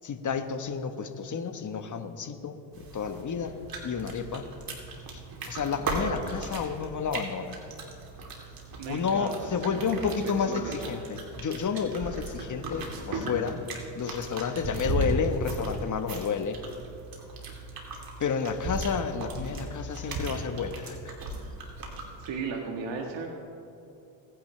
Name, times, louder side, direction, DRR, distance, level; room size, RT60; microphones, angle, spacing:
voice 1, 0.0-3.5 3.8-4.5 5.5-7.6 8.9-13.6 13.9-16.6 18.2-21.1, left 6 dB, 40° left, 8 dB, 1.3 m, -31 dB
sound 1, 2.7-22.3, right 2 dB, 45° right, 3.1 m, -37 dB
voice 2, 8.8-10.9 22.2-23.3, right 5 dB, 65° right, 1 dB, 1.6 m, -36 dB
23.0 x 10.0 x 3.3 m, 2.9 s
supercardioid pair, 75°, 48 cm